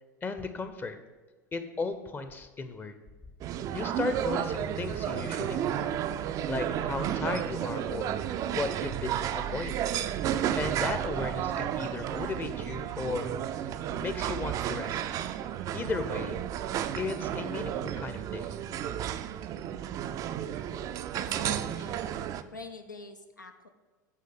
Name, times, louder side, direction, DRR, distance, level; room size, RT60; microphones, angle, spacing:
voice 1, 0.2-1.0 1.5-3.0 3.7-6.0 6.5-9.9 10.6-13.3 13.9-15.0 15.7-16.4 16.9-18.5, left 4 dB, 20° left, 9 dB, 0.7 m, -35 dB
sound 1, 3.4-22.4, right 10 dB, 35° right, 0.4 m, -32 dB
voice 2, 21.1-22.0 22.5-23.7, left 3 dB, 85° left, 6 dB, 0.6 m, -45 dB
8.4 x 3.8 x 6.9 m, 1.3 s
figure-of-eight pair, 80°, 10 cm